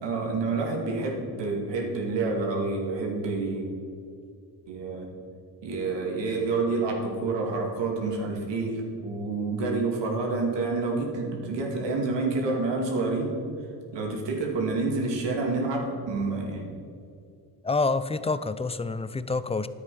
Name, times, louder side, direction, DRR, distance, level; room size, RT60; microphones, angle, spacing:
voice 1, 0.0-3.7 4.7-5.1 5.6-13.3 13.9-16.6, right 3 dB, 75° right, 0 dB, 2.4 m, -28 dB
voice 2, 17.6-19.7, left 3 dB, 15° left, 13 dB, 0.5 m, -27 dB
10.5 x 8.2 x 5.7 m, 2.4 s
supercardioid pair, 65°, 44 cm